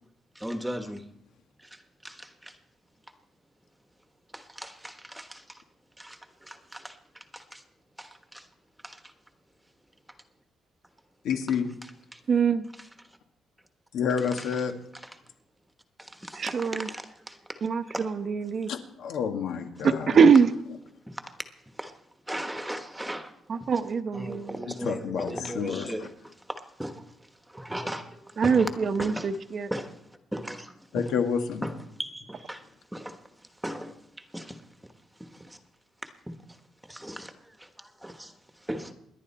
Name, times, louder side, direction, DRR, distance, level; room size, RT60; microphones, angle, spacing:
voice 1, 0.3-1.1 1.6-2.6 4.3-5.6 6.0-7.6 8.0-8.5 8.8-9.1 11.5-11.6 11.8-12.2 12.7-13.2 14.3-14.6 14.9-15.1 16.0-18.1 18.5-18.7 21.1-23.7 24.1-28.7 29.0-29.4 29.7-31.1 31.6-34.7 35.1-35.6 36.0-36.6 36.8-38.9, right 1 dB, 5° right, 7 dB, 1.2 m, -39 dB
voice 2, 11.2-11.7 13.9-14.7 18.7-20.2 24.7-25.9 30.9-31.6, left 7 dB, 85° left, 4 dB, 1.9 m, -29 dB
voice 3, 12.3-12.7 16.4-16.9 17.6-18.7 19.8-20.5 23.5-24.6 28.4-29.7, right 6 dB, 40° right, 9 dB, 0.9 m, -23 dB
28.0 x 11.0 x 4.3 m, 0.77 s
cardioid pair, 160°, 0 cm